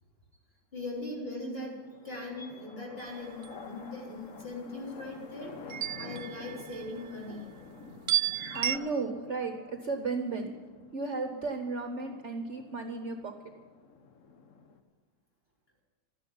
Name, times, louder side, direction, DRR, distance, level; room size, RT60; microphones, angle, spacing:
voice 1, 0.7-1.8 2.0-5.6 6.0-7.5 8.3-8.8, left 2 dB, 35° left, -3 dB, 4.0 m, -40 dB
sound 1, 1.8-14.8, left 5 dB, 55° left, 1.3 m, -50 dB
sound 2, 3.0-3.5 5.7-7.1 8.1-8.8, right 12 dB, 85° right, 0.5 m, -32 dB
voice 2, 8.5-10.5 10.9-13.3, right 3 dB, 50° right, 5 dB, 1.1 m, -34 dB
13.0 x 10.5 x 10.0 m, 1.4 s
omnidirectional pair, 1.8 m